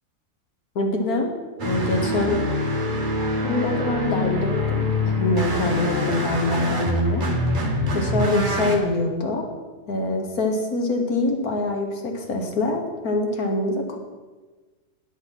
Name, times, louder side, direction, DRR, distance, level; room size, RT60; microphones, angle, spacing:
voice 1, 0.8-1.3 1.6-2.4 3.4-7.2 7.9-9.5 9.9-14.0, left 2 dB, 65° left, 3 dB, 1.7 m, -24 dB
sound 1, 1.6-8.8, left 1 dB, 35° right, 1.2 m, -25 dB
9.2 x 7.6 x 6.0 m, 1.3 s
omnidirectional pair, 1.7 m